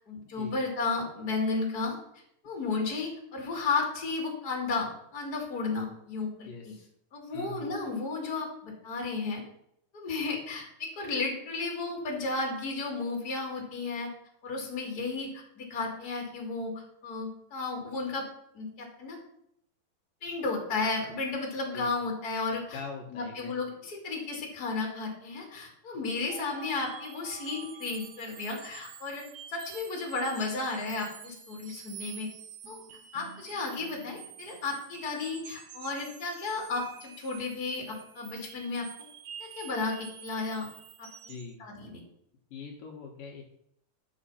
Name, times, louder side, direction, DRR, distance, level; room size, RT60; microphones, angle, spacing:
voice 1, 0.1-2.0 2.4-6.7 7.1-9.4 9.9-14.1 14.4-18.2 18.5-19.2 20.2-22.8 23.1-32.3 32.7-32.8 33.1-38.9 39.4-40.7 41.0-41.3 41.6-42.0, left 3 dB, 30° left, -1 dB, 3.0 m, -33 dB
voice 2, 6.5-6.9 7.3-7.7 21.7-21.9 22.7-23.5 26.1-26.3 41.3-41.6 42.5-43.4, left 5 dB, 75° left, 1 dB, 2.9 m, -42 dB
sound 1, 26.0-41.5, right 8 dB, 65° right, 2.0 m, -48 dB
11.0 x 6.4 x 5.7 m, 0.74 s
omnidirectional pair, 4.1 m